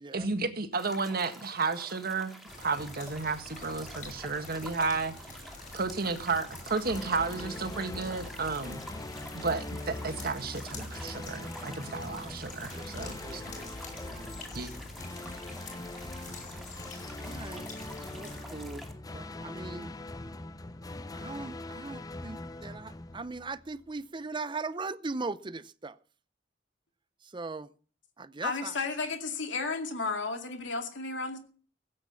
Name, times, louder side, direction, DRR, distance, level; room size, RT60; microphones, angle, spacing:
voice 1, 0.1-5.1 5.7-8.8 9.4-13.4 14.5-14.7, right 4 dB, 55° right, 1.6 m, -32 dB
sound 1, 0.7-18.9, equal, ahead, 2.6 m, -49 dB
sound 2, 2.5-18.4, left 2 dB, 45° left, 6.0 m, -47 dB
sound 3, 6.8-23.9, left 2 dB, 20° left, 0.5 m, -42 dB
voice 2, 12.8-14.5 15.0-15.3 17.2-17.7 18.1-19.9 21.1-26.0 27.2-27.7 28.2-28.8, right 3 dB, 25° right, 0.6 m, -40 dB
voice 3, 28.4-31.4, left 4 dB, 75° left, 2.4 m, -33 dB
16.0 x 8.6 x 7.1 m
head